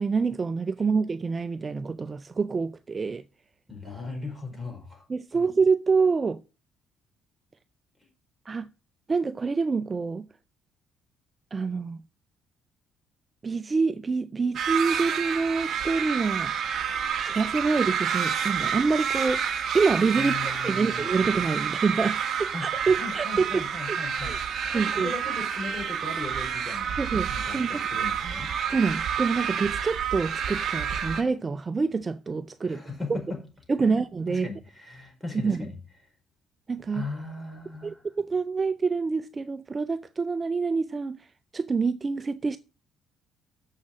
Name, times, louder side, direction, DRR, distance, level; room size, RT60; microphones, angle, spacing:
voice 1, 0.0-3.2 5.1-6.4 8.5-8.7 9.1-10.3 11.5-12.0 13.4-16.5 17.2-19.4 19.7-23.6 23.9-24.4 24.7-25.1 27.0-27.9 28.7-32.8 33.1-33.2 33.7-34.5 35.4-35.7 36.7-37.1 37.8-41.3 41.5-42.6, right 4 dB, 35° right, 0.5 m, -26 dB
voice 2, 3.7-5.0 5.3-5.5 20.2-21.2 22.5-24.4 24.7-27.0 27.3-28.6 32.6-33.4 33.8-34.0 34.3-35.8 36.9-38.0, left 3 dB, 5° left, 5.0 m, -38 dB
sound 1, 14.5-31.2, right 7 dB, 55° right, 1.6 m, -29 dB
7.3 x 5.8 x 7.5 m
hypercardioid pair, 55°, 0 cm